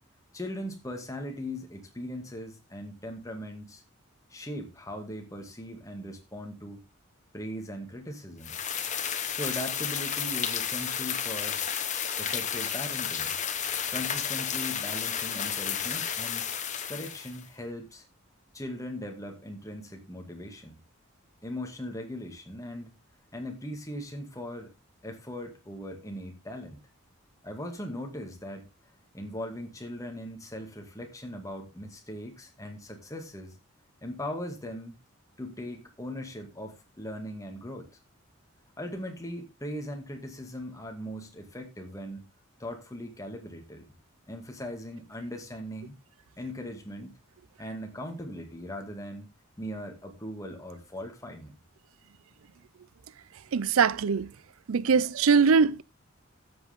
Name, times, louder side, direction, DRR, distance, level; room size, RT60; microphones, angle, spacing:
voice 1, 0.3-3.8 4.3-6.8 7.3-8.6 9.3-11.6 12.2-13.4 13.9-16.5 16.9-18.1 18.5-20.8 21.4-22.9 23.3-24.7 25.0-26.8 27.4-28.7 29.1-33.6 34.0-34.9 35.4-37.9 38.8-42.3 42.6-43.9 44.3-46.0 46.4-47.2 47.6-49.3 49.6-51.6, left 1 dB, 15° left, 2.1 m, -39 dB
sound 1, 8.4-17.4, left 8 dB, 35° left, 1.1 m, -32 dB
voice 2, 53.5-54.3 54.7-55.8, right 5 dB, 85° right, 0.5 m, -22 dB
13.0 x 8.0 x 3.6 m
head